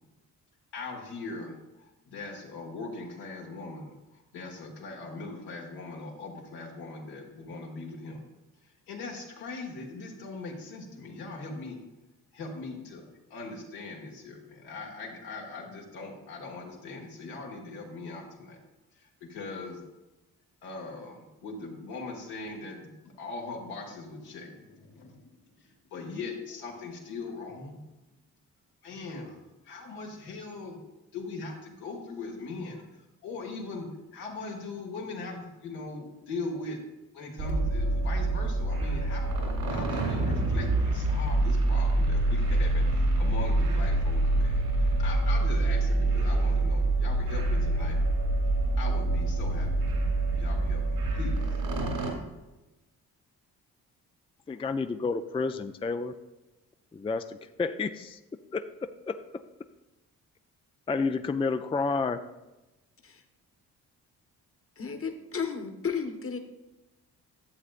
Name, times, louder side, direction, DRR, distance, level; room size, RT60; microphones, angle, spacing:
voice 1, 0.7-8.2 8.9-11.8 12.3-13.1 13.3-18.6 19.2-19.8 20.6-25.3 25.6-27.8 28.8-29.4 29.7-30.8 31.1-32.8 33.2-36.8 37.1-48.0 48.8-49.9 50.4-50.8 51.1-51.4, left 3 dB, 80° left, 1.9 m, -40 dB
sound 1, 37.4-52.1, right 2 dB, 75° right, 2.9 m, -26 dB
voice 2, 54.5-56.1 56.9-58.2 58.5-59.2 60.9-62.2, left 4 dB, 15° left, 0.4 m, -30 dB
voice 3, 64.8-66.4, left 6 dB, 35° left, 1.1 m, -33 dB
11.5 x 7.5 x 2.5 m
supercardioid pair, 50°, 39 cm